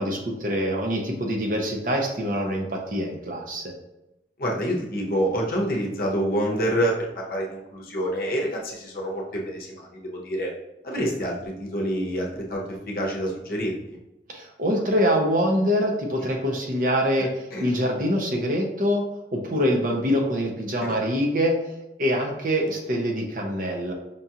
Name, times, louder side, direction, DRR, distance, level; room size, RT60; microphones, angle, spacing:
voice 1, 0.0-3.7 14.3-17.3 17.6-19.0 19.3-21.6 22.0-23.9, equal, 50° right, 1 dB, 0.6 m, -24 dB
voice 2, 4.4-10.5 10.8-14.0 16.2-16.3 17.5-17.7 20.8-20.9, equal, 55° left, -1 dB, 0.8 m, -27 dB
5.3 x 2.4 x 2.8 m, 0.92 s
head